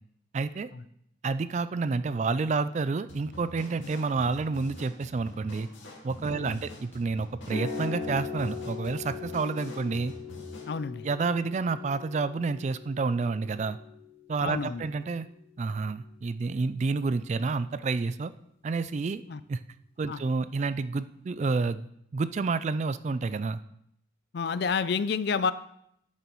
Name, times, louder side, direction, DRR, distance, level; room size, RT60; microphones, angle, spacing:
voice 1, 0.3-0.7 1.2-5.7 6.0-10.1 11.0-13.8 14.3-15.3 15.6-18.3 18.6-19.2 19.5-19.6 20.0-23.6, right 4 dB, 35° right, 13 dB, 0.3 m, -29 dB
sound 1, 3.1-10.8, left 1 dB, 80° left, 2.2 m, -46 dB
sound 2, 7.4-15.5, left 4 dB, 35° left, 1.2 m, -40 dB
voice 2, 10.7-11.0 14.4-14.8 19.3-19.4 20.1-20.2 24.3-25.5, left 5 dB, 55° left, 15 dB, 0.4 m, -29 dB
11.0 x 8.5 x 3.1 m, 0.74 s
head